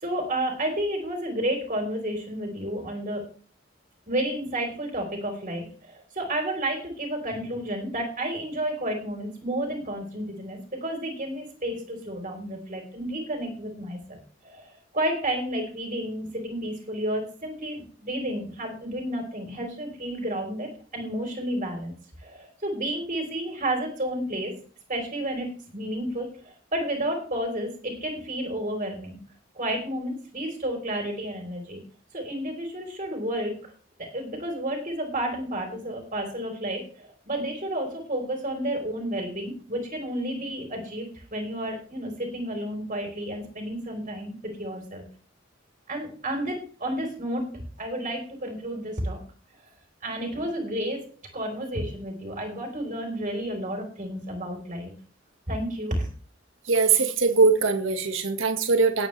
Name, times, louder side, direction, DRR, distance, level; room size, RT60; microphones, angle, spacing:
voice 1, 0.0-3.2 4.1-21.9 22.2-24.5 24.9-29.2 29.5-31.8 32.1-33.7 34.0-45.0 45.9-47.5 47.8-49.2 50.0-51.0 51.3-54.9 55.5-56.1, right 1 dB, 40° right, 1 dB, 3.9 m, -31 dB
voice 2, 56.7-59.1, right 4 dB, 85° right, 6 dB, 1.7 m, -21 dB
19.5 x 8.8 x 3.3 m, 0.41 s
head